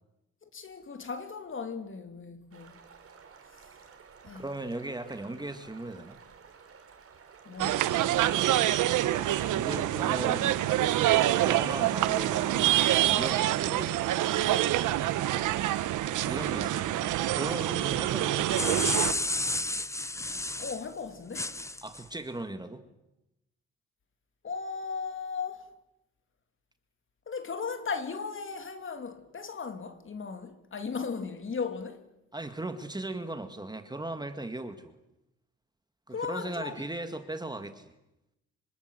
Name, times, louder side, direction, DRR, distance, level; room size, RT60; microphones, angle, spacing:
voice 1, 0.4-2.8 4.2-4.4 7.4-7.9 20.6-21.6 24.4-25.7 27.3-32.0 36.1-36.8, left 5 dB, 40° left, 3.1 m, -37 dB
sound 1, 2.5-14.2, right 6 dB, 50° right, 4.1 m, -53 dB
voice 2, 4.3-6.2 9.5-10.7 11.4-14.1 16.2-17.0 17.3-19.0 21.8-22.9 32.3-34.9 36.1-37.9, right 2 dB, 15° right, 1.9 m, -38 dB
sound 2, 7.6-19.1, right 13 dB, 85° right, 1.3 m, -26 dB
sound 3, 18.2-20.8 21.3-22.0, left 2 dB, 10° left, 0.9 m, -31 dB
26.0 x 25.0 x 7.8 m
cardioid pair, 90°, 30 cm